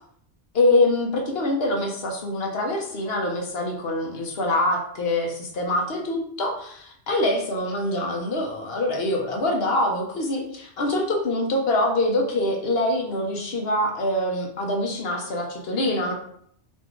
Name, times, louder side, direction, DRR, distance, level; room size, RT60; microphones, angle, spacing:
voice 1, 0.5-16.1, left 1 dB, 60° left, 1 dB, 1.0 m, -24 dB
4.4 x 2.7 x 4.4 m, 0.65 s
omnidirectional pair, 1.2 m